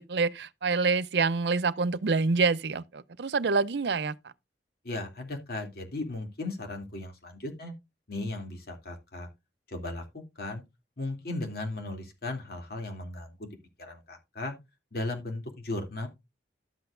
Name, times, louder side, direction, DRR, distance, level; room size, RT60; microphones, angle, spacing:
voice 1, 0.0-4.1, right 4 dB, 70° right, 0.5 m, -26 dB
voice 2, 4.8-7.7 8.1-9.3 9.7-10.0 10.4-10.6 11.0-14.5 14.9-16.1, left 2 dB, 60° left, 2.7 m, -36 dB
12.5 x 7.9 x 2.5 m
head